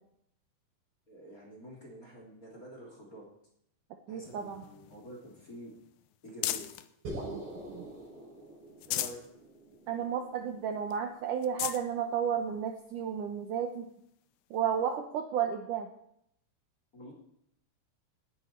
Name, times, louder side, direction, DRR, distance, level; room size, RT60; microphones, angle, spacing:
voice 1, 1.1-3.3 4.1-5.7 6.2-6.7 8.9-9.2 16.9-17.1, equal, 25° left, -2 dB, 2.8 m, -48 dB
voice 2, 4.1-4.6 7.2-7.4 7.7-7.9 9.9-13.9 14.5-15.9, right 8 dB, 85° right, 5 dB, 1.8 m, -32 dB
sound 1, 4.2-6.9 7.4-8.2 8.6-9.3 9.7-9.8 10.2-10.3 10.9-11.0 11.4-11.9 12.7-12.8 14.5-14.6, left 13 dB, 85° left, 2.0 m, -38 dB
sound 2, 7.1-11.4, right 1 dB, 55° right, 8.6 m, -45 dB
19.0 x 10.5 x 4.4 m, 0.74 s
omnidirectional pair, 5.0 m